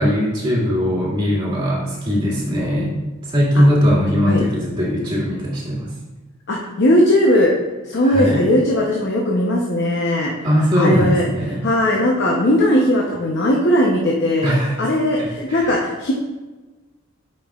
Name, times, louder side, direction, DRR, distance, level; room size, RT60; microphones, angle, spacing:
voice 1, 0.0-5.9 8.0-8.4 10.4-11.6 14.4-14.7 15.2-15.7, equal, 25° right, -6 dB, 2.1 m, -19 dB
voice 2, 6.5-7.5 7.8-10.3 10.8-14.5 14.8-16.1, left 1 dB, 55° left, -2 dB, 0.8 m, -18 dB
9.1 x 5.3 x 2.4 m, 1.2 s
head